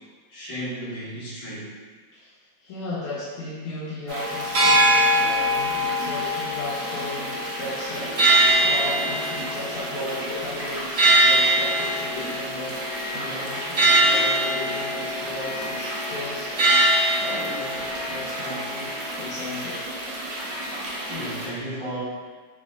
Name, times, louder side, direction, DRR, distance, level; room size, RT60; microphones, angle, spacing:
voice 1, 0.3-1.7 21.1-22.0, equal, 45° left, -10 dB, 2.0 m, -34 dB
voice 2, 2.6-8.3 8.6-12.8 13.1-16.5 17.2-18.9 19.2-19.8, left 1 dB, 75° left, -9 dB, 1.6 m, -35 dB
sound 1, 4.1-21.5, right 1 dB, 85° right, 0.7 m, -23 dB
4.2 x 3.8 x 2.4 m, 1.5 s
omnidirectional pair, 2.4 m